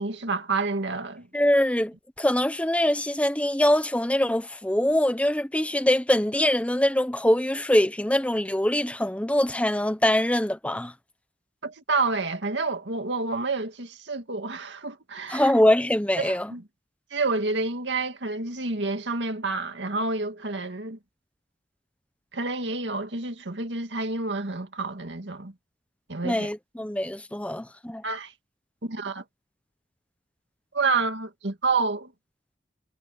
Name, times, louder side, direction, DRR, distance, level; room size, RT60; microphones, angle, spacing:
voice 1, 0.0-1.3 11.6-15.5 16.2-16.6 17.1-21.0 22.3-25.5 26.1-26.5 28.0-28.3 28.8-29.2 30.7-32.1, right 3 dB, 85° right, 2.1 m, -29 dB
voice 2, 1.3-10.9 15.3-16.5 26.2-28.0, left 1 dB, 5° left, 0.9 m, -23 dB
head